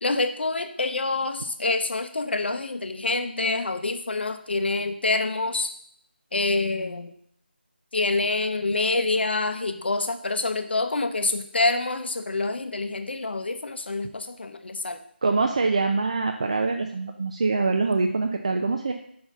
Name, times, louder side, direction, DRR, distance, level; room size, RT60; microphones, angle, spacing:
voice 1, 0.0-5.7 6.3-7.1 7.9-15.0, left 3 dB, 70° left, 9 dB, 0.8 m, -26 dB
voice 2, 15.2-18.9, right 3 dB, 35° right, 4 dB, 0.4 m, -24 dB
5.6 x 4.2 x 5.9 m, 0.66 s
figure-of-eight pair, 170°, 6 cm